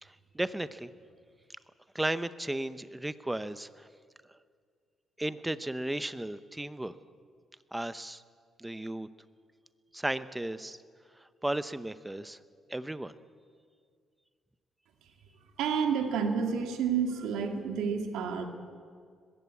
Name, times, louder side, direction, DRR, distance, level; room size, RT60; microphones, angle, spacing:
voice 1, 0.0-0.9 1.9-3.9 5.2-6.9 7.7-8.2 8.6-9.1 9.9-10.8 11.2-12.4 12.7-13.1, right 1 dB, 10° right, 14 dB, 0.8 m, -35 dB
voice 2, 15.6-18.5, right 6 dB, 90° right, 5 dB, 2.2 m, -29 dB
21.0 x 15.5 x 8.5 m, 2.1 s
cardioid pair, 90°, 0 cm